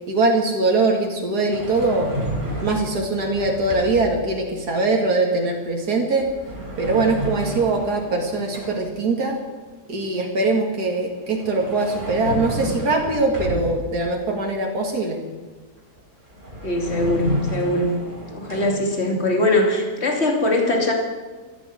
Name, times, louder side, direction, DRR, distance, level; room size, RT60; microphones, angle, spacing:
voice 1, 0.1-2.1 2.6-6.3 6.8-9.4 9.9-15.2, right 3 dB, 85° right, 1 dB, 2.6 m, -22 dB
sound 1, 1.5-4.2 6.2-9.0 11.1-14.0 16.0-16.1 16.3-18.7, right 1 dB, 30° right, 3.7 m, -31 dB
voice 2, 16.6-18.0 18.3-20.9, left 1 dB, 45° left, 2 dB, 2.9 m, -21 dB
14.5 x 12.5 x 7.8 m, 1.3 s
omnidirectional pair, 1.6 m